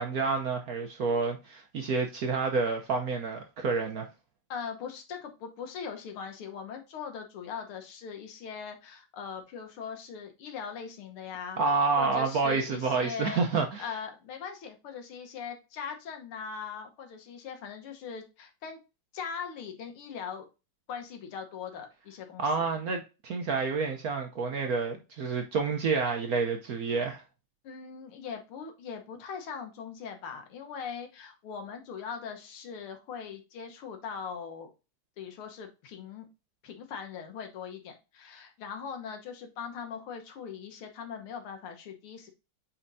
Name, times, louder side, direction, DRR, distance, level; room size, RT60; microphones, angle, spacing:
voice 1, 0.0-4.1 11.6-13.9 22.4-27.2, right 4 dB, 65° right, 0.9 m, -29 dB
voice 2, 4.5-11.6 12.0-18.8 19.1-20.5 20.9-22.7 27.6-34.7 35.2-36.3 36.6-42.3, left 6 dB, 90° left, 2.0 m, -40 dB
8.7 x 4.4 x 2.6 m
omnidirectional pair, 2.3 m